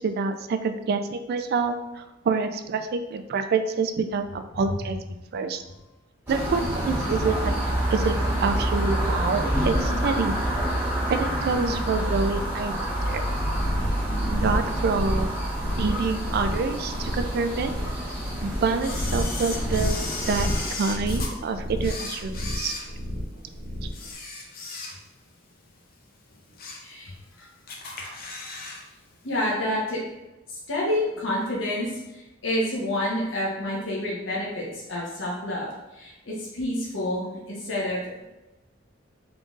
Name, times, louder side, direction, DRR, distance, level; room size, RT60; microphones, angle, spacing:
voice 1, 0.0-5.0 5.3-5.6 6.3-7.5 7.9-10.3 11.1-13.2 14.3-15.3 15.8-17.7 18.4-20.0 20.3-22.8, right 4 dB, 55° right, 8 dB, 0.3 m, -27 dB
sound 1, 6.3-20.7, equal, 10° right, 1.3 m, -27 dB
sound 2, 13.5-24.1, equal, 85° right, 0.9 m, -31 dB
Camera, 18.8-21.3 21.8-23.4 23.9-25.3 25.6-25.8 26.3-26.9 27.2-27.3 27.7-28.8 29.1-29.2, left 3 dB, 50° left, 0.6 m, -36 dB
voice 2, 26.8-27.1 28.0-28.1 29.2-30.0 30.5-38.0, left 1 dB, 75° left, -6 dB, 1.0 m, -29 dB
3.8 x 3.7 x 2.4 m, 1.0 s
head